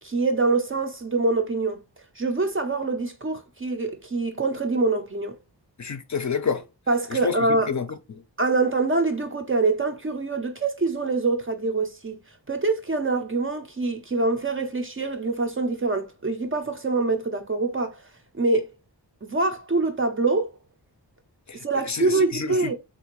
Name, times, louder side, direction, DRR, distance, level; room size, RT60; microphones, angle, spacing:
voice 1, 0.0-1.8 2.2-5.3 6.9-7.7 8.4-12.2 12.5-18.0 18.3-18.7 19.2-20.5 21.5-22.7, right 3 dB, 30° right, 0.5 m, -25 dB
voice 2, 5.8-6.6 7.1-7.3 7.7-8.2 21.5-21.6 21.8-22.7, left 6 dB, 40° left, 0.5 m, -29 dB
3.5 x 2.5 x 2.9 m
wide cardioid pair, 105°, 43 cm